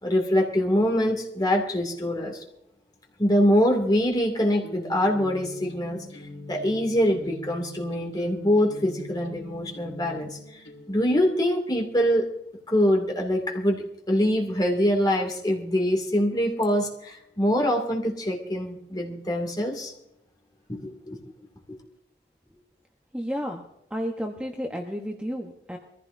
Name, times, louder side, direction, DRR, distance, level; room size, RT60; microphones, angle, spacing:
voice 1, 0.0-2.4 3.2-6.2 6.5-12.3 12.7-19.9 20.7-21.2, equal, 25° left, 1 dB, 2.5 m, -24 dB
sound 1, 4.6-11.2, left 2 dB, 85° left, 2.4 m, -42 dB
voice 2, 23.1-23.6 23.9-25.8, equal, 5° right, 1 dB, 1.1 m, -31 dB
23.0 x 15.0 x 2.7 m, 0.84 s
head